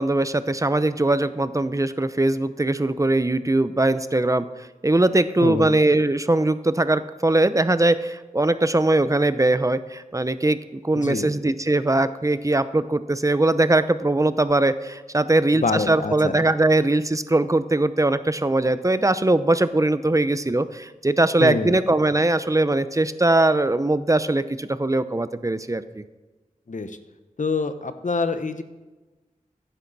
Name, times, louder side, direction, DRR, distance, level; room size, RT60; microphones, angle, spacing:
voice 1, 0.0-10.6 10.8-26.0, right 2 dB, 25° right, 13 dB, 0.7 m, -21 dB
voice 2, 10.9-11.3 15.5-16.4 21.4-21.8 26.7-27.0 27.4-28.6, left 4 dB, 65° left, 9 dB, 1.0 m, -26 dB
14.5 x 10.0 x 4.1 m, 1.2 s
wide cardioid pair, 45°, 14 cm